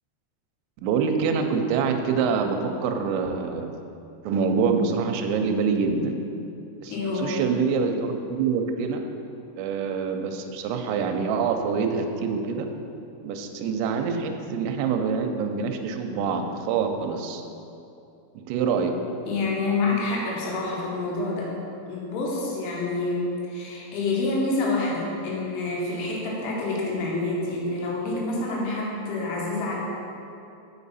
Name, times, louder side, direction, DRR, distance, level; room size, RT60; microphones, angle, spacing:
voice 1, 0.8-3.7 4.2-6.2 6.8-9.0 9.6-12.7 13.2-17.4 18.4-18.9, right 5 dB, 85° right, 5 dB, 2.7 m, -25 dB
voice 2, 6.9-7.4 19.3-21.5 21.9-29.8, left 3 dB, 80° left, -3 dB, 3.6 m, -27 dB
7.1 x 6.2 x 4.1 m, 2.8 s
omnidirectional pair, 5.6 m